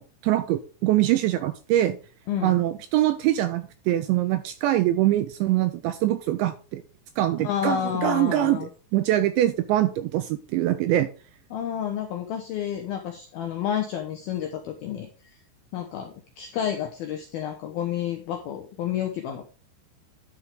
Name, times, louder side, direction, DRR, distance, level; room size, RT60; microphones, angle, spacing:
voice 1, 0.0-2.0 2.4-6.8 7.2-11.1, right 14 dB, 85° right, 10 dB, 2.6 m, -23 dB
voice 2, 2.3-2.6 7.4-8.7 11.5-15.4 15.7-19.4, left 9 dB, 85° left, 4 dB, 2.2 m, -30 dB
11.5 x 6.0 x 3.6 m, 0.37 s
omnidirectional pair, 5.8 m